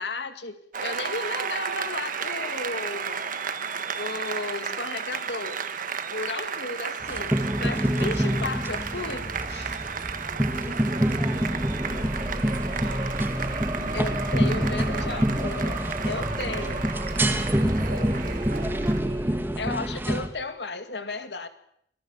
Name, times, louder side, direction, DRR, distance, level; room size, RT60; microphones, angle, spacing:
voice 1, 0.0-3.2 4.0-5.6 6.1-9.8 13.9-16.9 19.6-21.5, left 3 dB, 70° left, 9 dB, 2.2 m, -34 dB
Applause, 0.7-19.0, right 6 dB, 50° right, 1.6 m, -34 dB
sound 1, 7.0-20.3, equal, 10° right, 1.9 m, -27 dB
voice 2, 10.3-14.3 14.6-15.4 17.2-19.1, right 1 dB, 90° right, -1 dB, 7.6 m, -44 dB
sound 2, 11.1-20.2, right 1 dB, 25° right, 3.8 m, -34 dB
25.5 x 19.0 x 7.3 m, 0.69 s
head